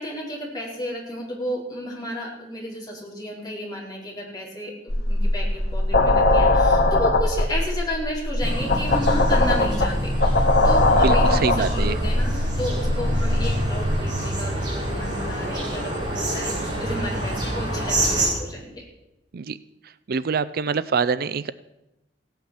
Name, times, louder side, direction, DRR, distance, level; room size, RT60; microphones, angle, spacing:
voice 1, 0.0-18.7, left 1 dB, 25° left, -3 dB, 4.7 m, -32 dB
sound 1, 4.9-14.0, left 2 dB, 60° left, 1.7 m, -20 dB
sound 2, 8.4-18.3, right 1 dB, 25° right, 6.5 m, -27 dB
voice 2, 10.9-12.0 19.3-19.6 20.1-21.5, right 5 dB, 55° right, 16 dB, 0.5 m, -25 dB
16.5 x 9.1 x 7.3 m, 0.95 s
head